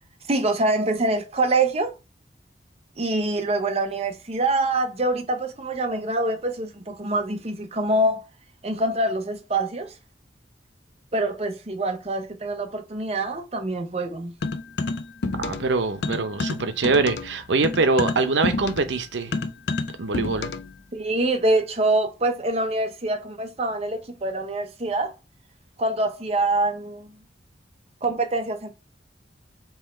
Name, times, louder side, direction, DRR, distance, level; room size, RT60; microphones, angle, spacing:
voice 1, 0.3-1.9 3.0-8.2 8.6-9.9 11.1-14.3 20.9-25.1 25.8-27.1 28.0-28.7, right 2 dB, 35° right, 0.7 m, -25 dB
sound 1, 14.4-15.7 16.0-20.7, left 3 dB, 70° left, 0.5 m, -29 dB
voice 2, 15.4-19.5 20.0-20.5, right 3 dB, 85° right, 0.7 m, -23 dB
3.6 x 2.9 x 4.2 m
head